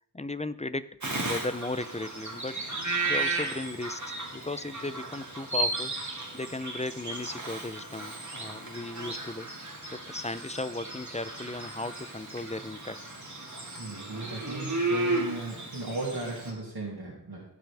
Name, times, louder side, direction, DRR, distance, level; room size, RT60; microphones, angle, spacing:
voice 1, 0.1-2.8 3.0-5.9 6.3-9.5 9.9-13.0, left 2 dB, 15° left, 14 dB, 0.5 m, -36 dB
Bird vocalization bird call bird song, 1.0-16.5, right 2 dB, 45° right, 2.5 m, -34 dB
voice 2, 13.8-17.4, right 2 dB, 65° right, -5 dB, 2.6 m, -36 dB
16.0 x 6.2 x 3.5 m, 0.77 s
wide cardioid pair, 45°, 40 cm